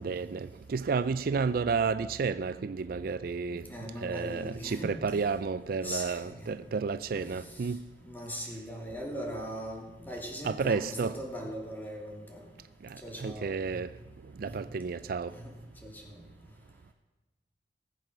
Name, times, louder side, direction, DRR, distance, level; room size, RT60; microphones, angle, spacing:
voice 1, 0.0-3.6 4.0-7.8 10.4-11.1 12.8-13.9 14.4-15.3, right 5 dB, 55° right, 0.4 m, -31 dB
voice 2, 3.7-5.2 5.8-6.5 7.1-12.5 13.0-13.9 14.4-14.5 15.3-15.5 15.8-16.2, equal, 10° left, 2.8 m, -40 dB
19.0 x 8.1 x 6.7 m
head